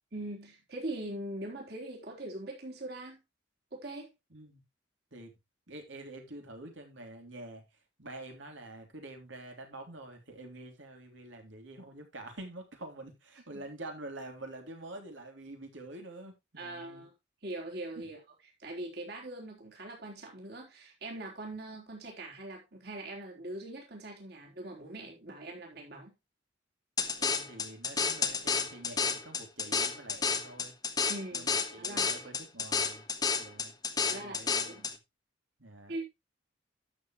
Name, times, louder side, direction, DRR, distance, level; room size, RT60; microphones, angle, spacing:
voice 1, 0.1-3.2 3.7-4.1 13.5-13.6 16.6-17.1 17.4-18.2 18.6-26.1 31.1-31.5 31.8-32.1 34.0-34.9 35.9-36.1, right 1 dB, 55° right, 3.9 m, -42 dB
voice 2, 4.3-4.6 5.1-5.3 5.7-7.7 8.0-17.0 17.9-18.1 27.2-30.7 31.3-33.1 33.4-35.0 35.6-36.1, right 2 dB, 80° right, 3.3 m, -47 dB
sound 1, 27.0-34.9, left 5 dB, 20° left, 1.3 m, -31 dB
12.0 x 7.3 x 3.1 m
head